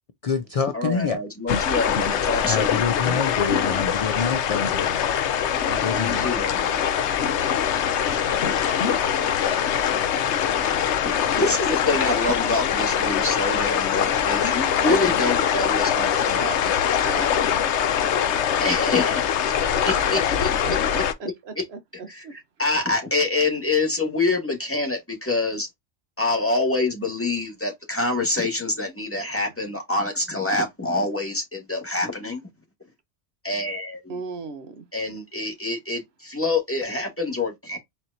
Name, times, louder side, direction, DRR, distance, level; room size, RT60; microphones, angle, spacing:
voice 1, 0.2-1.2 2.5-4.9 5.8-6.3, left 5 dB, 50° left, 0.4 m, -26 dB
voice 2, 0.7-2.8 5.7-6.8 11.3-16.7 17.0-17.3 18.6-19.5 19.8-20.5 21.2-21.6 22.1-22.2 22.6-25.7 26.2-32.4 33.4-34.0 34.9-37.8, left 2 dB, 10° left, 1.7 m, -26 dB
sound 1, 1.5-21.1, left 8 dB, 80° left, 1.0 m, -23 dB
voice 3, 6.0-6.8 7.2-7.4 19.8-19.9 20.4-22.4 34.1-34.9, right 4 dB, 65° right, 1.0 m, -39 dB
4.5 x 4.2 x 2.6 m
omnidirectional pair, 1.2 m